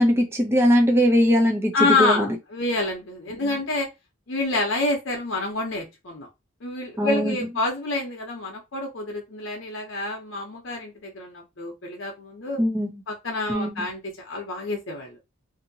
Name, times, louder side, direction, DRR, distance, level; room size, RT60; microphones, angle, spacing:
voice 1, 0.0-1.7 2.0-2.4 3.4-3.6 7.0-7.4 12.6-13.0 13.5-13.9, equal, 10° right, 1 dB, 0.5 m, -21 dB
voice 2, 1.7-3.9 4.3-6.3 6.6-12.6 13.1-15.2, left 2 dB, 65° left, 0 dB, 0.7 m, -27 dB
2.7 x 2.5 x 2.7 m, 0.23 s
head